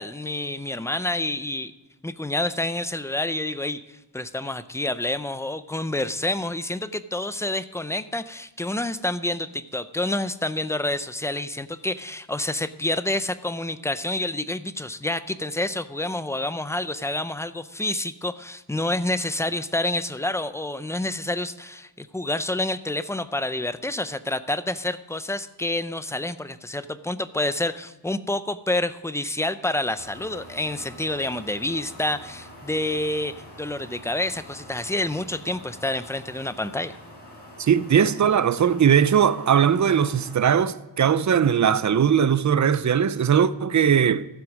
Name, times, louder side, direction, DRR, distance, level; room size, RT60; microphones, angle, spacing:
voice 1, 0.0-1.7 2.0-37.0, left 1 dB, 5° left, 0.4 m, -28 dB
sound 1, 30.0-40.5, left 1 dB, 65° left, 5.1 m, -45 dB
voice 2, 37.6-44.3, right 8 dB, 45° right, 0.5 m, -19 dB
14.0 x 7.8 x 6.3 m
wide cardioid pair, 175°, 42 cm